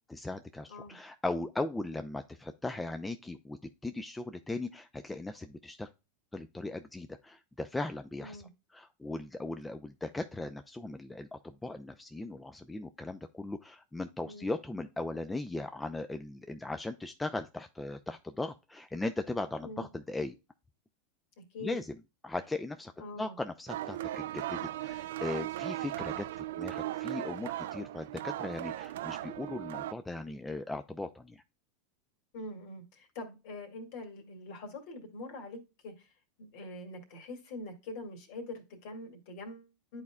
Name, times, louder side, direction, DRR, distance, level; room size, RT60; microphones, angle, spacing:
voice 1, 0.1-5.9 6.3-8.4 8.7-20.4 21.6-21.9 22.2-22.9 23.2-31.4, left 2 dB, 10° left, 0.5 m, -38 dB
voice 2, 8.2-8.5 14.2-14.5 19.6-19.9 21.5-21.8 23.0-23.4 25.9-26.1 32.3-36.1 36.4-40.0, left 2 dB, 60° left, 2.2 m, -44 dB
sound 1, 23.7-29.9, right 14 dB, 75° right, 0.3 m, -37 dB
10.5 x 4.2 x 2.3 m
hypercardioid pair, 95°, 0 cm